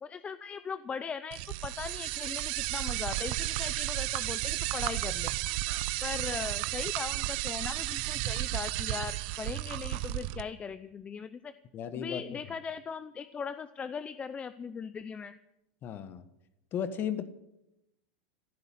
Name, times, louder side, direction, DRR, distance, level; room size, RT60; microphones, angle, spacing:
voice 1, 0.0-5.3 6.0-11.5 11.9-15.4, left 6 dB, 20° left, 13 dB, 0.6 m, -39 dB
sound 1, 1.3-10.4, right 18 dB, 60° right, 0.8 m, -33 dB
voice 2, 11.7-12.2 15.8-16.2 16.7-17.3, left 8 dB, 35° left, 13 dB, 1.4 m, -34 dB
15.0 x 12.0 x 7.8 m, 0.88 s
supercardioid pair, 130°, 6 cm